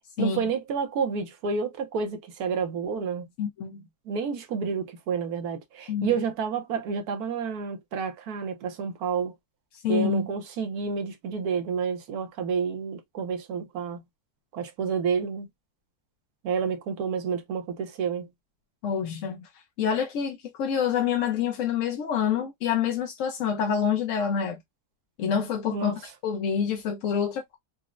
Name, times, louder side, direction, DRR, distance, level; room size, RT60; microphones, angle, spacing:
voice 1, 0.2-3.3 4.1-9.3 9.9-14.0 14.5-15.5 16.4-18.3 25.7-26.0, right 6 dB, 75° right, 1.2 m, -29 dB
voice 2, 3.4-3.8 5.9-6.1 9.8-10.3 18.8-19.5 19.8-24.6 25.2-27.6, left 7 dB, 65° left, 0.8 m, -27 dB
4.0 x 2.0 x 2.4 m
omnidirectional pair, 1.7 m